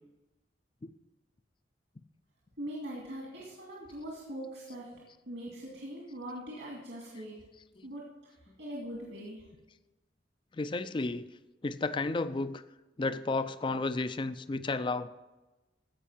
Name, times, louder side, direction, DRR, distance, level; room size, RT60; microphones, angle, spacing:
voice 1, 2.6-7.4 7.8-9.5, right 1 dB, 75° right, -4 dB, 2.4 m, -42 dB
voice 2, 10.5-11.3 11.6-12.6 13.0-15.1, left 3 dB, 25° left, 13 dB, 0.4 m, -32 dB
15.5 x 5.5 x 5.6 m, 1.1 s
head